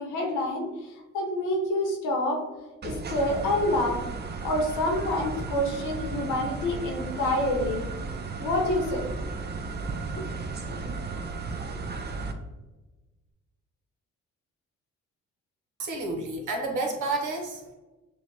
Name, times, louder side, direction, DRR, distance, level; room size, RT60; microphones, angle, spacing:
voice 1, 0.0-2.4 2.8-4.0 4.4-7.8 8.4-9.0 10.1-10.2, left 1 dB, 90° left, 1 dB, 1.3 m, -27 dB
sound 1, 2.8-12.3, right 4 dB, 35° right, 0.6 m, -34 dB
voice 2, 15.8-17.7, right 2 dB, 80° right, 2 dB, 1.2 m, -30 dB
6.3 x 2.5 x 2.8 m, 1.2 s
cardioid pair, 90°, 30 cm